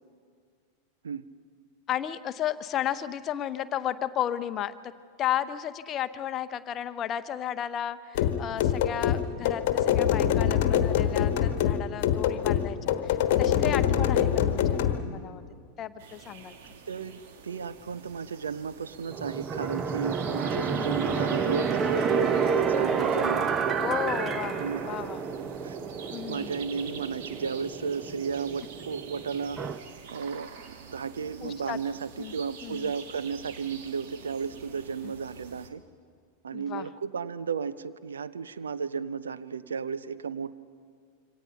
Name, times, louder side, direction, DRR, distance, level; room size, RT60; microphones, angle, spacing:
voice 1, 1.9-4.9 5.2-15.4 15.8-16.6 20.6-20.9 23.8-25.2 26.1-26.5 31.4-31.8 32.2-32.3 32.6-32.9 35.0-35.1 36.5-36.9, left 11 dB, 30° left, 12 dB, 0.8 m, -33 dB
sound 1, 8.1-15.0, left 10 dB, 50° left, 1.3 m, -24 dB
voice 2, 14.0-14.3 16.9-23.7 24.6-24.9 25.6-25.8 26.3-29.6 30.1-35.8 36.4-40.6, right 6 dB, 70° right, 15 dB, 0.7 m, -34 dB
sound 2, 16.0-35.7, right 6 dB, 50° right, 1.8 m, -47 dB
sound 3, 19.1-29.8, right 6 dB, 25° right, 1.0 m, -29 dB
26.5 x 24.5 x 5.7 m, 2.1 s
figure-of-eight pair, 90°, 0 cm